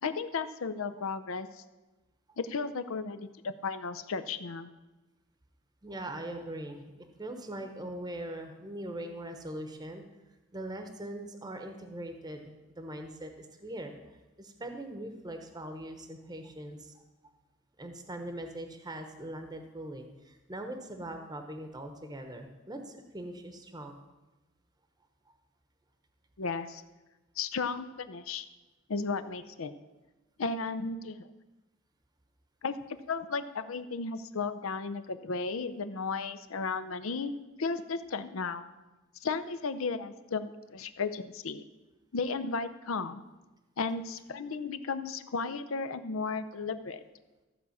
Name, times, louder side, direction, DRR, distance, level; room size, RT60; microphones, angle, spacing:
voice 1, 0.0-1.6 2.4-4.7 26.4-26.8 27.4-28.5 28.9-29.7 30.4-31.3 32.6-32.8 33.1-37.3 37.6-38.7 39.2-41.6 42.1-43.2 43.8-47.0, left 4 dB, 75° left, 11 dB, 0.6 m, -34 dB
voice 2, 5.8-10.0 10.5-17.0 17.8-24.0, right 1 dB, 20° right, 6 dB, 0.9 m, -41 dB
14.0 x 4.8 x 7.1 m, 1.1 s
head